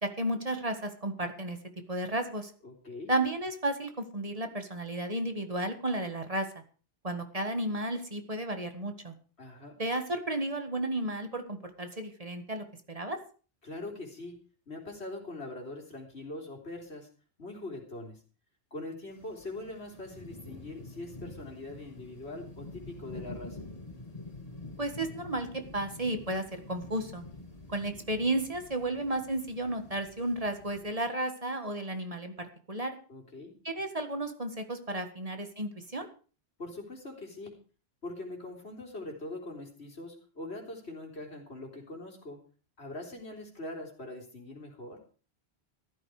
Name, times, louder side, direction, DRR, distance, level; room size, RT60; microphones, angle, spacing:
voice 1, 0.0-1.6 1.9-2.5 3.1-6.5 7.0-9.1 9.8-13.2 24.8-27.2 27.7-33.0 33.7-36.1, right 1 dB, 35° right, 7 dB, 1.8 m, -33 dB
voice 2, 2.6-3.1 9.4-9.8 13.6-14.3 14.7-17.1 17.4-18.2 18.7-23.6 33.1-33.5 36.6-37.5 38.0-42.4 42.8-45.0, left 2 dB, 85° left, 1 dB, 3.9 m, -42 dB
sound 1, 19.1-30.8, left 2 dB, 35° left, 2.8 m, -47 dB
14.5 x 13.0 x 4.9 m, 0.38 s
omnidirectional pair, 1.1 m